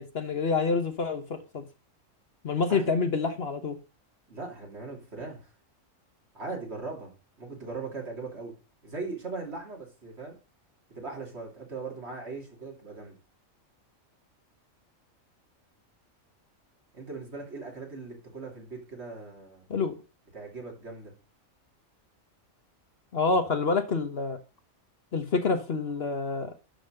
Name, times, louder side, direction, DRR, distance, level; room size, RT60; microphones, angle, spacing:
voice 1, 0.0-1.6 2.4-3.8 19.7-19.9 23.1-24.4 25.1-26.5, left 4 dB, 50° left, 1.1 m, -27 dB
voice 2, 4.3-5.5 6.3-7.1 7.4-8.5 8.8-10.4 11.0-13.1 16.9-19.6 20.3-21.1, right 3 dB, 50° right, 3.3 m, -39 dB
11.5 x 4.0 x 6.5 m
omnidirectional pair, 1.4 m